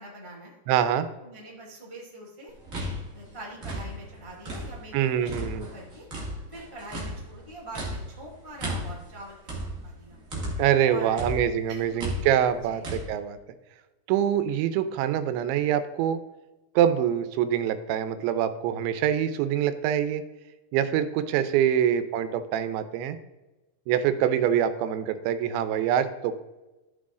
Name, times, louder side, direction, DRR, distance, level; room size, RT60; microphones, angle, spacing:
voice 1, 0.0-0.5 1.2-2.5 3.1-5.4 5.7-6.0 6.5-10.2 10.9-11.3 11.7-12.0 12.6-12.8 21.7-22.1, right 1 dB, 20° left, -4 dB, 0.7 m, -44 dB
voice 2, 0.7-1.1 4.9-5.7 10.6-13.4 14.1-16.2 16.8-20.2 20.7-23.2 23.9-26.4, right 10 dB, 85° right, 11 dB, 2.9 m, -25 dB
sound 1, 2.5-4.9 5.3-10.8 11.2-13.0, equal, 35° right, 1.2 m, -35 dB
12.5 x 6.2 x 3.7 m, 1.1 s
omnidirectional pair, 5.2 m